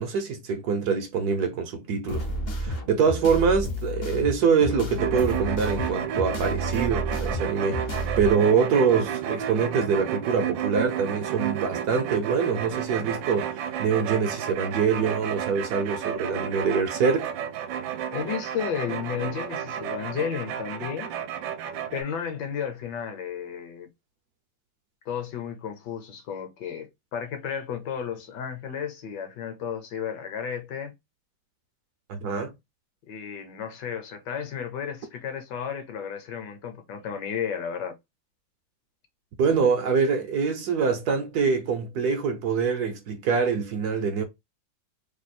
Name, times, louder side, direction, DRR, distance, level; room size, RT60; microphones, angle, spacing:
voice 1, 0.0-2.3 2.5-17.3 32.1-32.5 39.4-44.2, right 5 dB, 65° right, 1.1 m, -24 dB
sound 1, 2.1-8.3, equal, 55° left, 0.6 m, -31 dB
sound 2, 5.0-22.0, right 9 dB, 85° right, 1.3 m, -32 dB
voice 2, 18.1-21.1 21.9-23.9 25.1-30.9 33.1-38.0, left 8 dB, 70° left, 1.3 m, -33 dB
3.3 x 2.3 x 4.0 m
omnidirectional pair, 2.0 m